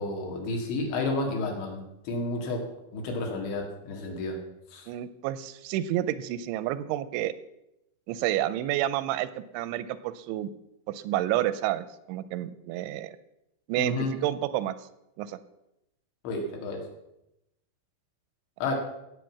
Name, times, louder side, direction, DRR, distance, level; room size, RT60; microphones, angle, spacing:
voice 1, 0.0-4.4 4.7-4.8 13.8-14.1 16.2-16.8 18.6-18.7, left 2 dB, 75° left, 1 dB, 4.6 m, -31 dB
voice 2, 4.9-7.3 8.1-9.3 9.5-10.5 10.9-13.1 13.7-14.7 15.2-15.4, right 13 dB, 85° right, 14 dB, 2.9 m, -29 dB
16.5 x 8.3 x 5.9 m, 0.85 s
omnidirectional pair, 5.4 m